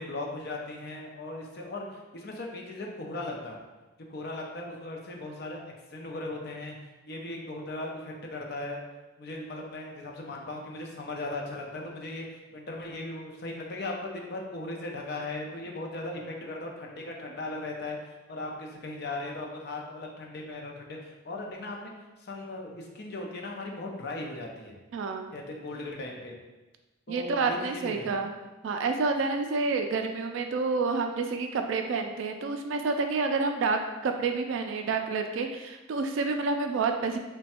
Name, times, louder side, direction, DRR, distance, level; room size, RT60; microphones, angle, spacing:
voice 1, 0.0-3.6 4.1-6.8 7.1-8.8 9.2-18.0 18.3-21.9 22.2-24.8 25.3-26.3 27.1-28.2, left 2 dB, 50° left, 0 dB, 0.6 m, -38 dB
voice 2, 24.9-25.3 27.1-28.3 28.6-37.2, right 4 dB, 65° right, 5 dB, 0.3 m, -29 dB
3.3 x 2.2 x 4.2 m, 1.1 s
head